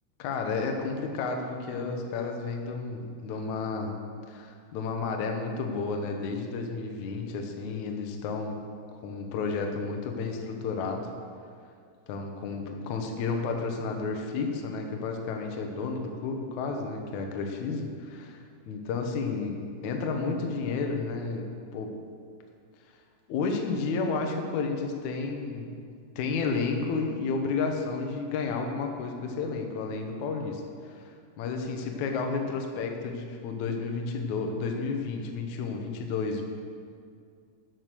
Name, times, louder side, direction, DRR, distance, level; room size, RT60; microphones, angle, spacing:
voice 1, 0.2-4.0 4.3-8.6 9.0-11.1 12.1-18.4 18.7-19.6 19.8-21.9 23.3-25.8 26.2-31.1 31.4-36.4, left 4 dB, 75° left, 3 dB, 1.8 m, -31 dB
12.5 x 6.0 x 6.8 m, 2.3 s
omnidirectional pair, 4.7 m